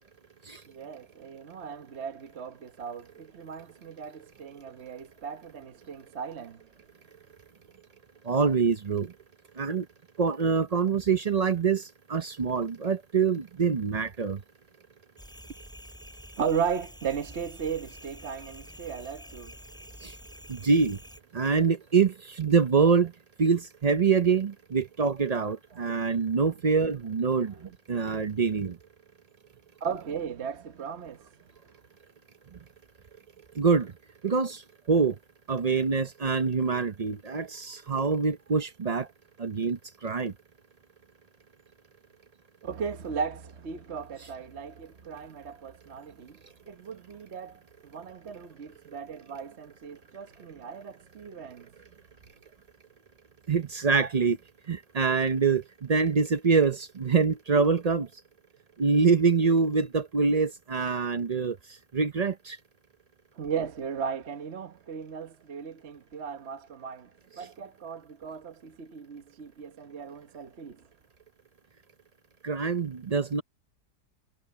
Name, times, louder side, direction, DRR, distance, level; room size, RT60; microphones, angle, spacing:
voice 1, 0.7-6.6 16.4-19.5 27.5-27.8 28.1-28.3 29.8-31.3 42.6-46.4 46.7-51.7 63.3-67.1 67.4-70.8, right 6 dB, 45° right, 1.1 m, -36 dB
voice 2, 8.2-9.1 9.6-9.9 10.2-14.4 20.0-20.1 20.5-21.0 21.3-23.1 23.4-27.5 27.9-28.8 33.5-33.9 34.2-34.6 34.9-35.2 35.5-39.1 39.4-40.3 53.5-54.4 54.7-58.1 58.8-61.6 61.9-62.6 67.4-67.5 72.4-73.4, right 5 dB, 85° right, 0.3 m, -25 dB
sound 1, 15.2-21.2, equal, ahead, 7.1 m, -48 dB
omnidirectional pair, 1.8 m